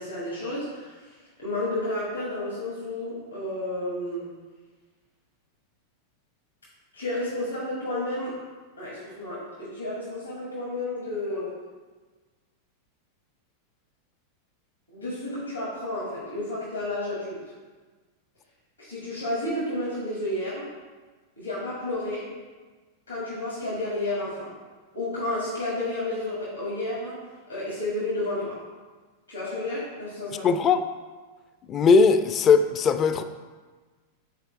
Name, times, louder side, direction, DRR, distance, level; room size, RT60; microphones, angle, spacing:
voice 1, 0.0-4.3 6.9-8.3 8.8-11.5 14.9-17.5 18.8-20.7 21.4-22.3 23.1-24.5 24.9-27.2 27.5-28.6 29.3-30.5, left 1 dB, 80° left, -7 dB, 1.8 m, -31 dB
voice 2, 30.4-30.8 31.7-33.2, left 5 dB, 30° left, 11 dB, 0.4 m, -19 dB
7.6 x 4.5 x 3.2 m, 1.4 s
figure-of-eight pair, 90°, 0 cm